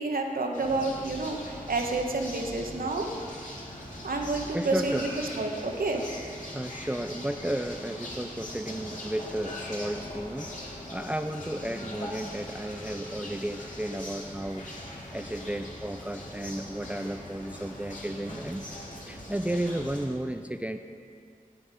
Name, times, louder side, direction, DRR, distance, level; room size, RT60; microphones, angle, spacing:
voice 1, 0.0-3.1 4.0-5.1 5.4-6.0, right 3 dB, 75° right, 2 dB, 1.2 m, -29 dB
sound 1, 0.5-20.0, left 1 dB, 60° left, 2.7 m, -41 dB
voice 2, 4.5-5.1 6.5-18.7 19.0-20.8, right 1 dB, 10° right, 7 dB, 0.4 m, -33 dB
12.5 x 8.7 x 4.9 m, 2.3 s
wide cardioid pair, 55°, 15 cm